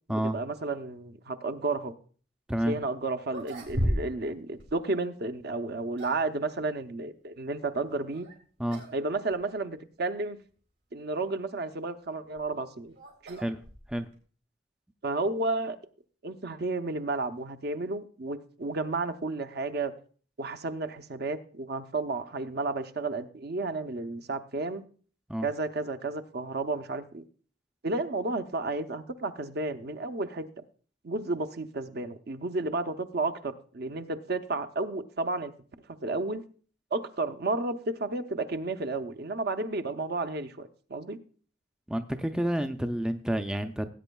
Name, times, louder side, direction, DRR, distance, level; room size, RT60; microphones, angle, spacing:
voice 1, 0.1-1.9 2.7-8.3 8.9-10.4 10.9-13.0 13.2-13.4 15.0-15.8 16.2-19.9 20.4-24.8 25.4-27.2 27.8-30.6 31.0-35.5 36.0-36.4 36.9-41.2, right 3 dB, 60° right, 7 dB, 0.7 m, -32 dB
sound 1, 3.2-4.3 4.6-4.7 5.6-6.3 8.1-8.4 8.7-9.0 9.3-9.4 10.2-10.3 12.1-14.2, equal, 90° right, 4.2 m, -34 dB
voice 2, 41.9-43.9, right 1 dB, 5° right, 7 dB, 0.4 m, -29 dB
18.5 x 9.0 x 2.3 m, 0.41 s
head